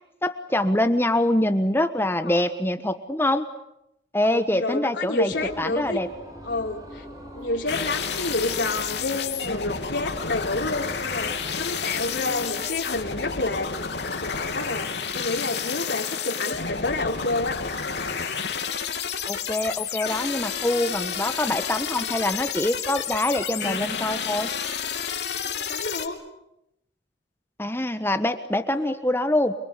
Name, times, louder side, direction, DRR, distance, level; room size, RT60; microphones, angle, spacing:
voice 1, 0.2-3.5 4.1-6.1 19.3-24.5 27.6-29.5, left 1 dB, 15° left, 9 dB, 1.3 m, -24 dB
voice 2, 4.2-6.0 6.4-7.0 7.3-13.7 14.0-17.6 25.4-26.2 28.7-28.9, left 2 dB, 85° left, -1 dB, 4.0 m, -29 dB
sound 1, 5.3-13.7, equal, 20° right, 6.5 m, -43 dB
sound 2, 7.7-26.1, left 6 dB, 70° left, 3.0 m, -30 dB
29.0 x 23.5 x 8.3 m, 0.83 s
head